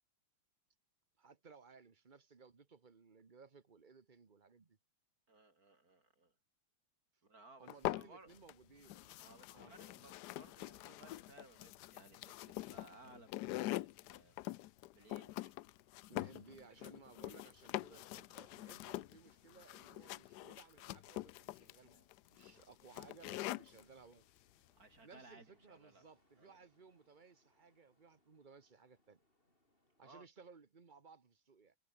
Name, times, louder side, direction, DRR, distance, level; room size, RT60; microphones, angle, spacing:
voice 1, 1.2-4.8 7.6-9.2 9.5-9.7 16.1-24.2 25.0-29.2 30.0-31.7, right 5 dB, 25° right, 1.3 m, -61 dB
voice 2, 5.3-6.3 7.2-8.3 8.9-14.4 14.9-15.6 16.8-16.9 24.8-26.0 26.4-26.6 30.0-30.3, right 3 dB, 45° right, 4.4 m, -61 dB
sound 1, 7.7-8.5 8.8-23.8, left 16 dB, 85° left, 0.9 m, -44 dB
sound 2, 14.7-30.0, left 1 dB, 25° left, 6.7 m, -78 dB
omnidirectional pair, 2.3 m